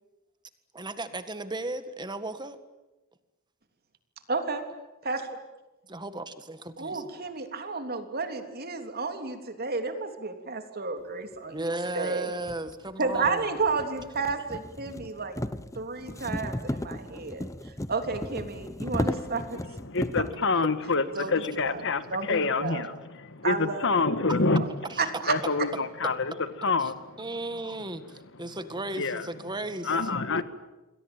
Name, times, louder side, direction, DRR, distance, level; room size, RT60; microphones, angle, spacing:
voice 1, 0.7-2.6 5.9-7.1 11.5-13.5 24.9-25.0 27.2-29.9, right 2 dB, 20° right, 11 dB, 1.9 m, -35 dB
voice 2, 4.3-4.6 5.0-5.3 6.8-12.3 13.0-15.4 15.8-17.5 17.9-19.6 21.2-21.3 21.6-21.8 22.1-22.8 23.4-23.9 24.5-24.6 25.0-25.4, right 4 dB, 45° right, 7 dB, 3.3 m, -31 dB
sound 1, 11.6-11.7 12.4-20.4, left 1 dB, 15° left, 0.8 m, -35 dB
voice 3, 19.0-24.6 25.3-28.6 28.9-29.3 29.8-30.4, left 3 dB, 60° left, 12 dB, 1.6 m, -28 dB
28.5 x 22.5 x 9.0 m, 1.1 s
head